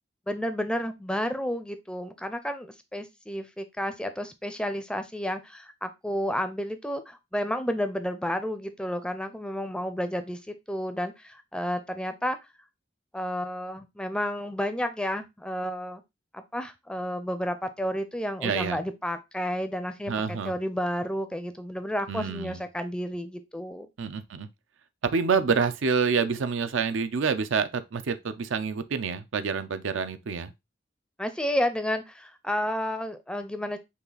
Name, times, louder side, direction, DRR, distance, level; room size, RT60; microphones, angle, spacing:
voice 1, 0.3-12.4 13.1-16.0 16.3-23.9 31.2-33.8, equal, 5° left, 0.4 m, -31 dB
voice 2, 18.4-18.8 20.1-20.5 22.1-22.6 24.0-24.5 25.0-30.5, right 5 dB, 85° right, 0.5 m, -27 dB
5.6 x 2.4 x 3.9 m
head